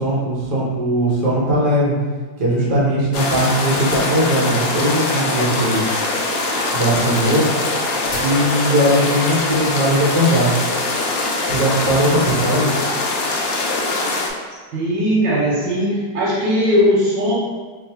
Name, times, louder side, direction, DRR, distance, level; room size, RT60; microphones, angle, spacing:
voice 1, 0.0-1.9 2.4-5.8 6.7-7.5 8.2-10.5 11.5-12.7, equal, 60° right, -7 dB, 1.6 m, -19 dB
sound 1, 3.1-14.3, left 2 dB, 90° left, 1.3 m, -22 dB
sound 2, 6.6-11.5, left 1 dB, 65° left, 1.2 m, -40 dB
voice 2, 14.7-17.3, equal, 85° right, -6 dB, 1.5 m, -18 dB
3.8 x 2.1 x 4.2 m, 1.4 s
omnidirectional pair, 2.0 m